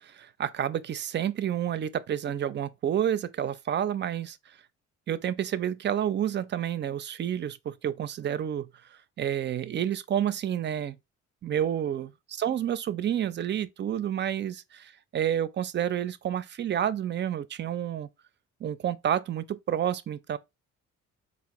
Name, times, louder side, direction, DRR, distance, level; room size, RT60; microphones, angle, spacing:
voice 1, 0.0-4.4 5.1-8.7 9.2-11.0 11.4-18.1 18.6-20.4, right 10 dB, 40° right, 0.4 m, -29 dB
4.1 x 2.5 x 2.9 m
cardioid pair, 90°, 30 cm